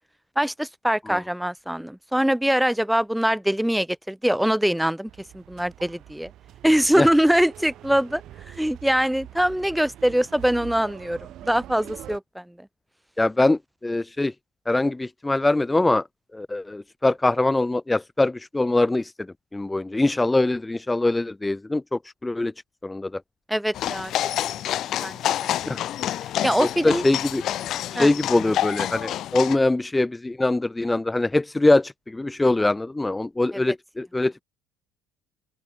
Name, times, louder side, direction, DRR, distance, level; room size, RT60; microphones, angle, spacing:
voice 1, 0.4-6.3 6.6-8.2 8.5-12.7 23.5-24.1 25.0-25.5 26.4-27.0 27.9-28.1, equal, 5° right, 2.8 m, -23 dB
sound 1, 5.1-12.2, right 12 dB, 60° right, 6.3 m, -44 dB
voice 2, 13.2-14.3 14.7-16.0 16.3-19.3 19.5-22.5 22.8-23.2 25.7-25.8 26.6-27.4 27.9-34.4, left 2 dB, 10° left, 1.0 m, -23 dB
sound 2, 23.7-29.6, left 12 dB, 55° left, 2.3 m, -28 dB
open air
supercardioid pair, 85°, 0 cm